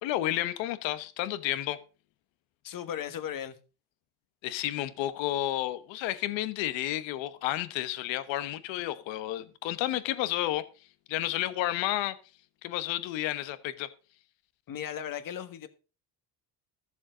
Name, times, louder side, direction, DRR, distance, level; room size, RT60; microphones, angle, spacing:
voice 1, 0.0-1.8 4.4-10.6 11.1-12.2 12.6-13.9, left 14 dB, 90° left, 1.2 m, -31 dB
voice 2, 2.6-3.6 14.7-15.7, left 9 dB, 50° left, 1.6 m, -36 dB
14.0 x 7.3 x 5.1 m
cardioid pair, 130°, 43 cm